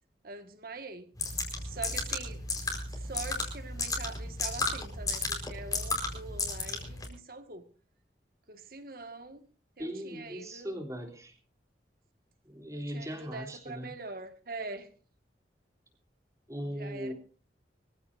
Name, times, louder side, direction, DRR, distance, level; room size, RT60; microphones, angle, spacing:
voice 1, 0.2-1.1 1.6-2.4 2.9-7.6 8.5-9.4 9.8-10.7 12.7-14.9 16.7-17.1, right 3 dB, 55° right, 1.9 m, -43 dB
sound 1, 1.2-7.1, left 3 dB, 20° left, 4.8 m, -34 dB
voice 2, 9.8-11.4 12.5-13.9 16.5-17.1, equal, 20° right, 3.5 m, -39 dB
25.0 x 15.5 x 2.7 m
head